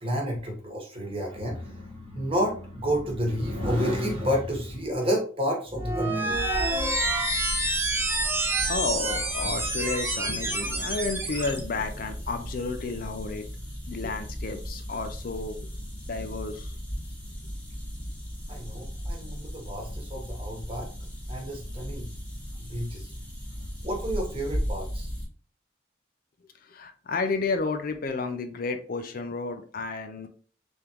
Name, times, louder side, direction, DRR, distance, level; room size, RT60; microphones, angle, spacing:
voice 1, 0.0-6.3 18.5-20.9 21.3-22.1 22.6-23.1 23.8-25.1, equal, 30° right, 0 dB, 1.2 m, -30 dB
sound 1, 5.7-11.6, right 2 dB, 15° right, 0.7 m, -28 dB
sound 2, 6.3-25.2, equal, 10° left, 1.1 m, -37 dB
voice 2, 8.6-13.5 13.9-15.7 16.1-16.8 26.6-30.3, left 3 dB, 50° left, 7 dB, 0.4 m, -32 dB
3.6 x 3.5 x 2.9 m, 0.43 s
head